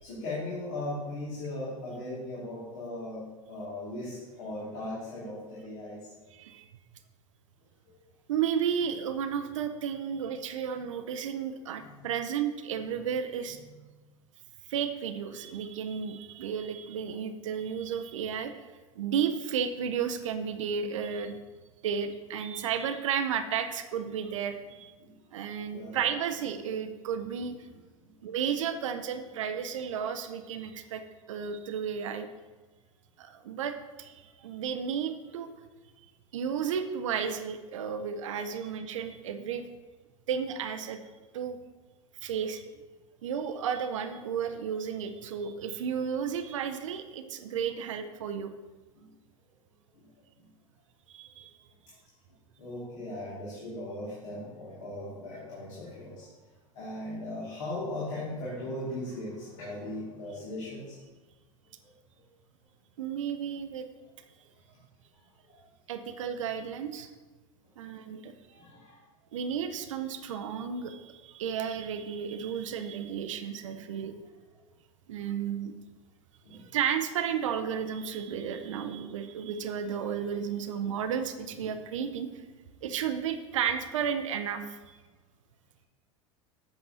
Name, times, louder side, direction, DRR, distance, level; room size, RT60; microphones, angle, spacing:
voice 1, 0.0-6.1 12.0-12.1 25.0-25.2 25.7-26.1 28.0-28.1 48.9-49.1 49.9-50.1 50.4-50.5 52.6-56.3 56.7-61.0 61.8-61.9 65.1-65.6 68.5-69.0 73.7-74.2 76.4-76.7, left 1 dB, 60° left, -7 dB, 2.2 m, -38 dB
voice 2, 6.3-6.7 8.3-13.6 14.7-18.6 19.0-21.4 21.8-24.9 25.3-27.5 28.2-31.0 31.3-32.3 33.2-35.5 36.3-39.6 40.3-41.0 41.3-41.6 42.2-42.6 43.2-48.5 51.1-51.5 63.0-63.9 65.9-67.1 67.8-68.3 69.3-74.1 75.1-75.7 76.5-82.3 82.8-84.8, right 7 dB, 65° right, 9 dB, 0.6 m, -33 dB
8.1 x 6.5 x 2.7 m, 1.2 s
figure-of-eight pair, 80°, 17 cm